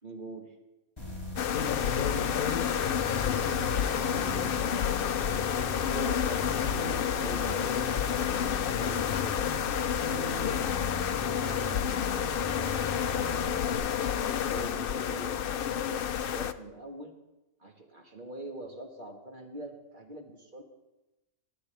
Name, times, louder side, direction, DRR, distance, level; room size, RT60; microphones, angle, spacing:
voice 1, 0.0-0.5 5.8-6.5 7.1-7.8 8.7-9.3 11.5-12.4 14.1-17.1 17.6-20.6, right 2 dB, 35° right, 2 dB, 1.7 m, -43 dB
sound 1, 1.0-13.8, equal, 25° left, 4.5 m, -39 dB
voice 2, 1.4-3.9 8.5-9.4, left 6 dB, 85° left, 6 dB, 1.4 m, -37 dB
sound 2, 1.4-16.5, left 9 dB, 65° left, 0.5 m, -30 dB
sound 3, 1.4-8.6, right 3 dB, 60° right, 1.7 m, -52 dB
22.0 x 9.7 x 3.4 m, 1.0 s
omnidirectional pair, 1.5 m